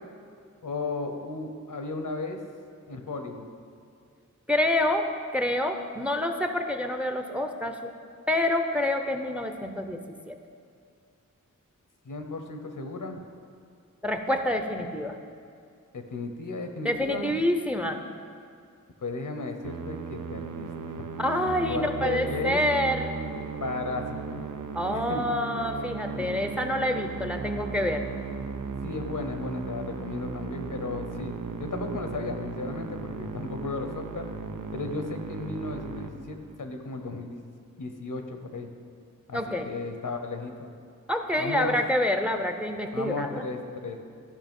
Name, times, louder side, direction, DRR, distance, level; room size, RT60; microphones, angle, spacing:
voice 1, 0.6-2.4 2.9-3.5 12.0-13.2 15.9-17.5 19.0-20.7 21.7-22.6 23.6-24.5 24.9-25.2 26.1-26.3 28.8-34.3 34.7-37.5 37.8-38.7 39.3-40.7 41.4-41.8 42.9-44.0, left 3 dB, 85° left, 5 dB, 1.0 m, -35 dB
voice 2, 4.5-7.8 8.3-10.0 10.3-10.4 14.0-15.2 16.8-18.0 21.2-23.1 24.7-28.0 39.3-39.7 41.1-43.4, left 1 dB, 5° right, 6 dB, 0.6 m, -27 dB
Musical instrument, 19.6-36.8, right 5 dB, 85° right, 0.6 m, -36 dB
13.5 x 5.7 x 5.3 m, 2.3 s
wide cardioid pair, 70°, 31 cm